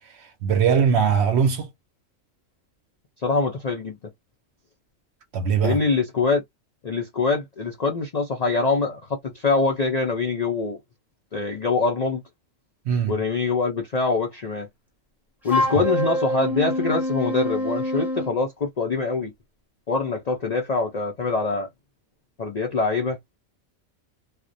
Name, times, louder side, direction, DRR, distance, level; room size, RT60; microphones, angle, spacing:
voice 1, 0.0-1.7 5.3-5.8 12.9-13.2, right 7 dB, 65° right, 0.8 m, -21 dB
voice 2, 3.2-3.9 5.6-6.4 6.8-10.8 11.3-12.2 13.1-14.7 15.4-19.3 19.9-21.7 22.4-23.2, left 4 dB, 55° left, 0.4 m, -24 dB
Wind instrument woodwind instrument, 15.5-18.3, left 1 dB, ahead, 0.7 m, -26 dB
2.3 x 2.1 x 2.5 m
omnidirectional pair, 1.4 m